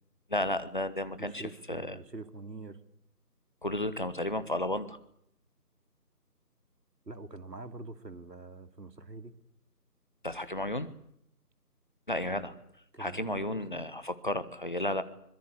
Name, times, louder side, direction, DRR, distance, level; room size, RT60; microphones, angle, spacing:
voice 1, 0.3-2.0 3.6-5.0 10.2-10.9 12.1-12.5 13.0-15.0, left 1 dB, 30° left, 13 dB, 1.3 m, -33 dB
voice 2, 1.2-2.8 7.1-9.3 12.3-12.5 12.9-13.9, right 3 dB, 90° right, 11 dB, 2.9 m, -45 dB
24.0 x 22.0 x 8.3 m, 0.72 s
figure-of-eight pair, 175°, 48 cm